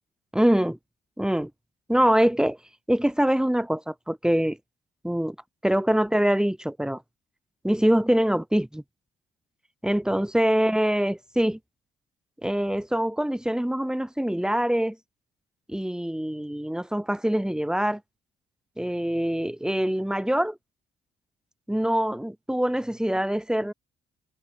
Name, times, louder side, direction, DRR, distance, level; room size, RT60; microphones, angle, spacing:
voice 1, 0.3-0.8 1.2-1.5 1.9-2.6 2.9-4.6 5.0-5.4 5.6-7.0 7.6-8.8 9.8-11.6 12.4-15.0 15.7-18.0 18.8-20.6 21.7-23.7, equal, 5° right, 2.4 m, -24 dB
cardioid pair, 90°, 20 cm